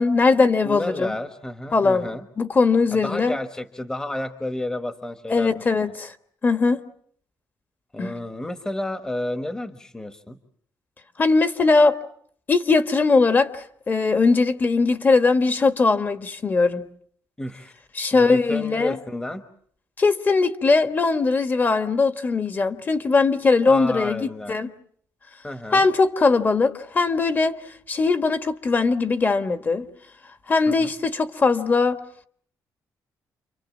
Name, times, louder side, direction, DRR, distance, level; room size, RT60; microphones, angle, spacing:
voice 1, 0.0-1.1 1.7-2.1 2.4-3.4 5.3-6.1 6.4-6.8 8.0-8.1 11.2-12.0 12.5-16.8 17.9-19.0 20.0-24.7 25.7-27.6 27.9-29.9 30.5-32.0, left 4 dB, 30° left, 1.4 m, -20 dB
voice 2, 0.6-2.3 2.9-5.9 7.9-10.4 17.4-17.7 18.1-19.4 23.7-24.6 25.4-25.8 30.7-30.9, left 1 dB, 10° left, 1.2 m, -31 dB
28.5 x 25.0 x 7.3 m
cardioid pair, 150°, 7 cm